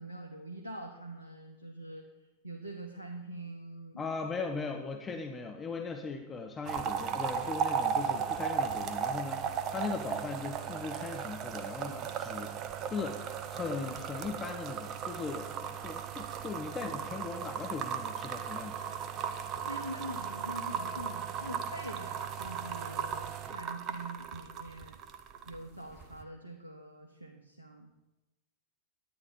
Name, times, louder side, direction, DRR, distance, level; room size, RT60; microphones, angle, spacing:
voice 1, 0.0-2.0 2.4-4.1 5.1-5.5 19.5-25.0 25.4-27.9, right 1 dB, 85° right, 1 dB, 1.2 m, -44 dB
voice 2, 4.0-12.5 12.9-13.2 13.5-18.8, left 4 dB, 20° left, 4 dB, 1.1 m, -39 dB
sound 1, 6.6-25.6 25.9-26.2, right 7 dB, 35° right, 0.9 m, -36 dB
11.0 x 9.5 x 5.2 m, 0.98 s
figure-of-eight pair, 90°, 0 cm